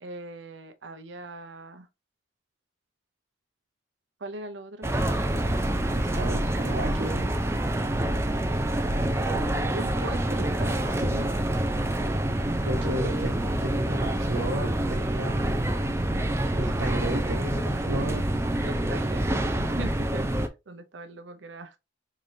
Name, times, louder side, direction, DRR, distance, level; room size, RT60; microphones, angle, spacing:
voice 1, 0.0-1.9 4.2-4.9 9.2-10.8 12.7-13.4 18.6-20.3 20.7-21.7, right 2 dB, 75° right, 0.6 m, -40 dB
sound 1, 4.8-20.5, right 1 dB, 15° right, 0.4 m, -27 dB
voice 2, 5.9-7.4 10.9-11.3 12.6-15.7 16.6-18.3, right 1 dB, 90° right, 1.1 m, -33 dB
3.7 x 3.3 x 2.6 m
head